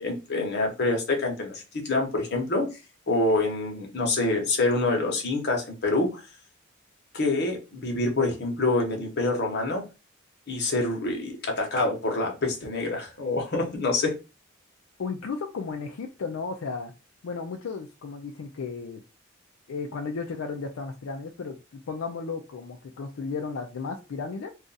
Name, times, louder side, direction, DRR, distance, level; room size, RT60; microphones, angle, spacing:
voice 1, 0.0-2.7 3.1-6.2 7.1-9.8 10.5-14.1, left 2 dB, 55° left, 1 dB, 1.0 m, -26 dB
voice 2, 15.0-16.9 17.2-19.0 19.7-21.6 21.9-24.5, left 4 dB, 85° left, 3 dB, 0.4 m, -34 dB
2.5 x 2.4 x 3.9 m, 0.28 s
head